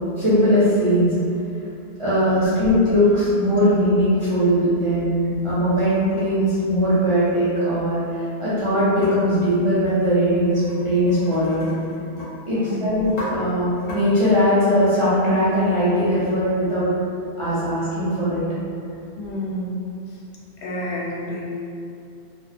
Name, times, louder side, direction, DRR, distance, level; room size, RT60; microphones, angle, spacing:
voice 1, 0.2-1.1 2.0-11.6 12.5-16.9 17.4-18.4, equal, 45° right, -12 dB, 0.4 m, -20 dB
sound 1, 5.2-5.6 5.9-7.3 9.0-9.1 10.5-10.8 11.1-12.3 12.6-12.7 13.0-13.3 13.8-14.0, left 1 dB, 50° left, 0.8 m, -37 dB
voice 2, 12.5-12.9 19.2-19.8 20.1-20.2 20.6-21.4, equal, 80° left, -6 dB, 0.9 m, -30 dB
2.2 x 2.1 x 2.6 m, 2.6 s
omnidirectional pair, 1.1 m